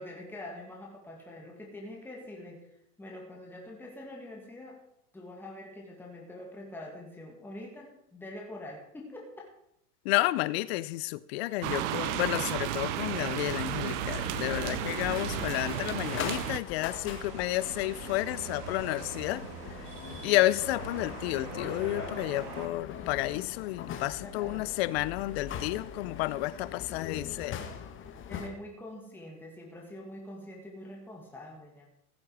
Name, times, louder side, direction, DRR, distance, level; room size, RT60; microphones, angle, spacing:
voice 1, 0.0-2.7 3.0-4.8 5.1-9.5 24.2-24.7 28.3-31.9, left 1 dB, 5° left, 2.0 m, -45 dB
voice 2, 10.0-19.4 20.2-27.6, left 18 dB, 45° left, 0.6 m, -31 dB
sound 1, 11.6-16.6, right 12 dB, 50° right, 0.9 m, -33 dB
sound 2, 12.9-28.5, left 8 dB, 25° left, 1.2 m, -42 dB
sound 3, 17.0-22.7, right 6 dB, 75° right, 2.2 m, -43 dB
15.5 x 7.6 x 4.8 m
hypercardioid pair, 125°, 47 cm